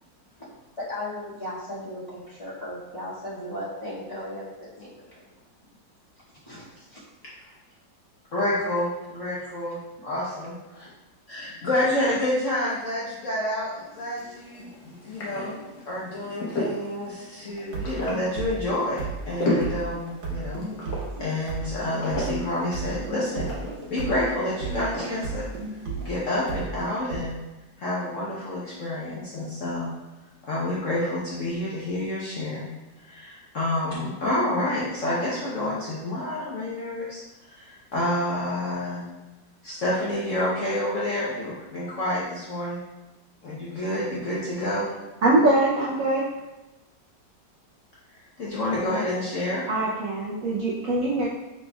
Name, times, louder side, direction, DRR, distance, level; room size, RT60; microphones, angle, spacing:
voice 1, 0.8-4.5 4.7-5.0 6.4-7.0 11.4-11.7, left 1 dB, 20° left, -10 dB, 1.6 m, -36 dB
voice 2, 8.3-10.9 11.3-15.6 15.9-20.6 21.2-23.5 23.9-25.4 26.0-27.4 27.8-29.9 30.5-32.7 33.1-37.2 37.5-39.0 39.6-42.8 43.4-44.8 48.4-49.6, left 1 dB, 50° left, -7 dB, 1.0 m, -28 dB
sound 1, 13.8-26.7, left 1 dB, 75° left, 1.8 m, -35 dB
sound 2, 17.6-27.2, right 4 dB, 90° right, 1.7 m, -34 dB
voice 3, 45.2-46.2 49.7-51.3, right 2 dB, 65° right, -6 dB, 0.9 m, -22 dB
5.6 x 4.1 x 2.3 m, 1.0 s
omnidirectional pair, 2.0 m